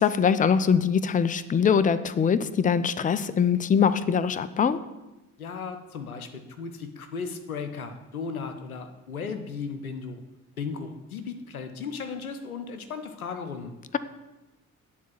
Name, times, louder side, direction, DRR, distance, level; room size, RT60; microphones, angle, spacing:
voice 1, 0.0-4.8, left 7 dB, 20° left, 14 dB, 0.5 m, -22 dB
voice 2, 5.4-10.2 10.6-13.7, left 5 dB, 90° left, 8 dB, 0.6 m, -36 dB
9.5 x 4.1 x 7.3 m, 1.0 s
figure-of-eight pair, 40°, 42 cm